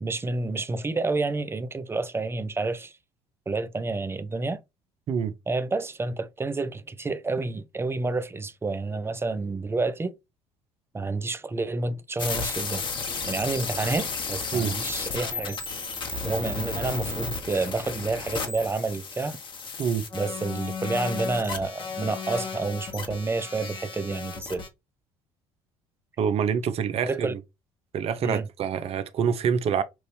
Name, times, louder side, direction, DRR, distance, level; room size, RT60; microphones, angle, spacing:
voice 1, 0.0-2.9 3.5-4.6 5.5-10.1 10.9-12.8 13.3-15.6 16.2-19.4 20.1-24.6 27.0-27.3 28.2-28.5, right 3 dB, 20° right, 0.7 m, -29 dB
sound 1, 12.2-24.7, left 5 dB, 40° left, 1.4 m, -33 dB
voice 2, 26.2-27.4 27.9-29.8, right 7 dB, 55° right, 0.8 m, -26 dB
6.0 x 2.6 x 3.4 m
hypercardioid pair, 65°, 13 cm